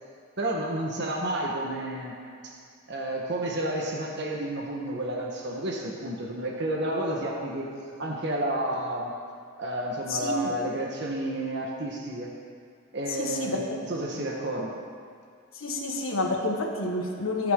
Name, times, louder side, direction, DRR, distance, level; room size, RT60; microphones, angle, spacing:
voice 1, 0.4-2.2 2.4-2.5 2.9-7.7 8.0-9.1 9.6-12.3 12.9-14.7, right 1 dB, 55° right, -1 dB, 1.5 m, -31 dB
voice 2, 13.2-13.6 15.5-17.5, left 2 dB, 85° left, -1 dB, 1.7 m, -29 dB
24.0 x 9.6 x 3.9 m, 2.3 s
head